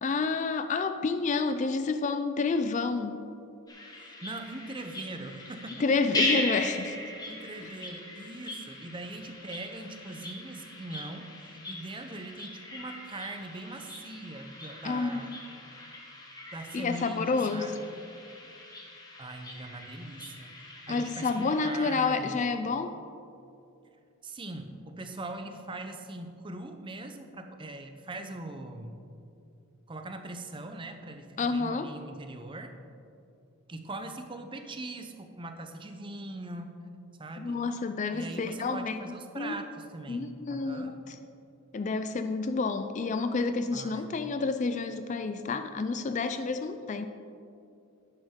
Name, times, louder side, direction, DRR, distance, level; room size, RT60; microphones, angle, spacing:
voice 1, 0.0-3.2 5.8-7.0 7.6-7.7 14.8-15.4 16.7-17.7 20.9-23.0 31.4-31.9 37.4-39.0 39.4-39.6 40.1-41.2 41.7-47.1, left 4 dB, 35° left, 9 dB, 0.3 m, -29 dB
sound 1, 3.7-22.0, left 2 dB, 15° left, 1.2 m, -39 dB
voice 2, 4.0-5.8 7.3-15.4 16.5-17.8 19.2-22.4 24.2-29.0 29.9-32.7 33.7-36.8 37.2-37.6 38.1-41.0 43.7-44.1, right 2 dB, 20° right, 6 dB, 0.6 m, -41 dB
10.5 x 9.7 x 3.7 m, 2.6 s
head